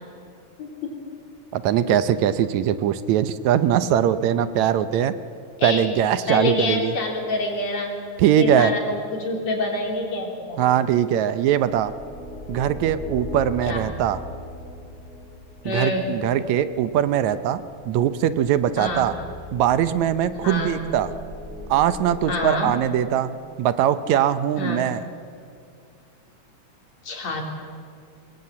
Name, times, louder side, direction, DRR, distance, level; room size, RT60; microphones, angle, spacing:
voice 1, 0.6-1.1 5.6-5.9 6.3-7.9 8.4-10.7 13.7-13.8 15.6-16.1 18.8-19.1 20.4-20.7 22.3-22.7 24.6-24.9 27.0-27.4, left 2 dB, 65° left, 1 dB, 4.8 m, -26 dB
voice 2, 1.5-5.1 5.6-6.9 8.2-8.7 10.6-11.9 12.5-14.2 15.7-19.1 19.5-21.1 21.7-23.3 23.6-25.0, right 10 dB, 80° right, 12 dB, 2.1 m, -21 dB
sound 1, 11.4-22.4, left 1 dB, 20° left, 8.3 m, -39 dB
25.0 x 20.5 x 8.7 m, 2.3 s
omnidirectional pair, 3.3 m